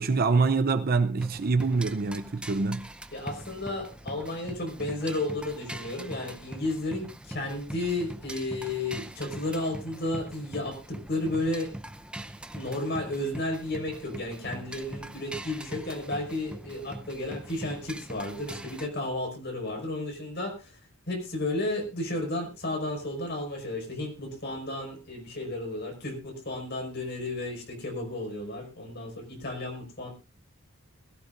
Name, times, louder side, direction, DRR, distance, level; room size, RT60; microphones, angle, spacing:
voice 1, 0.0-2.9, right 4 dB, 45° right, 0.6 m, -25 dB
sound 1, 1.2-18.9, right 1 dB, 5° right, 0.7 m, -42 dB
voice 2, 3.1-11.7 12.5-20.8 21.1-30.1, left 2 dB, 50° left, 5.5 m, -33 dB
21.0 x 14.5 x 2.6 m
head